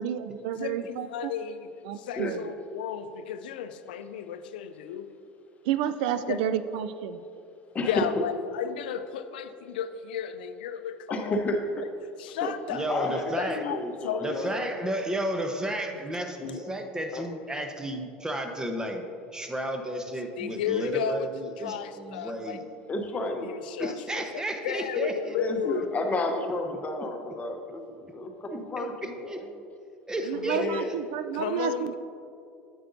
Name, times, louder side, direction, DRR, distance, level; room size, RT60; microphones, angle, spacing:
voice 1, 0.0-1.3 1.8-2.5 5.6-7.2 30.3-31.9, right 9 dB, 70° right, 12 dB, 0.3 m, -30 dB
voice 2, 0.6-1.7 2.0-5.1 6.3-6.4 7.8-11.4 12.2-12.8 13.4-14.6 20.4-21.3 21.6-22.6 23.4-25.9 30.3-30.8 31.3-31.9, left 8 dB, 80° left, 10 dB, 0.5 m, -34 dB
voice 3, 7.7-8.2 11.1-11.8 12.4-12.5 12.9-14.7 16.4-16.7 17.1-17.3 22.9-23.5 25.3-29.5 30.5-31.0, left 2 dB, 30° left, 4 dB, 0.9 m, -31 dB
voice 4, 12.7-13.6 14.2-19.0 19.3-22.6 23.8-25.3 29.0-29.4 30.1-30.6, right 1 dB, 15° right, 5 dB, 0.9 m, -32 dB
9.1 x 8.1 x 2.7 m, 2.6 s
hypercardioid pair, 80°, 5 cm